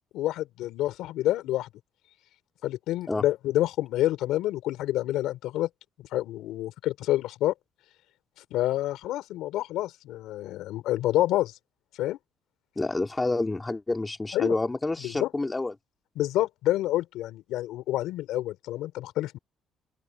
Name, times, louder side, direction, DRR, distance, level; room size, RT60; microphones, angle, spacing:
voice 1, 0.1-1.7 2.6-5.7 6.1-7.5 8.5-11.5 12.0-12.2 14.3-14.6 15.0-15.3 16.2-19.4, left 14 dB, 85° left, 4.7 m, -28 dB
voice 2, 12.8-15.7, left 2 dB, 15° left, 3.0 m, -28 dB
open air
cardioid pair, 105°, 0 cm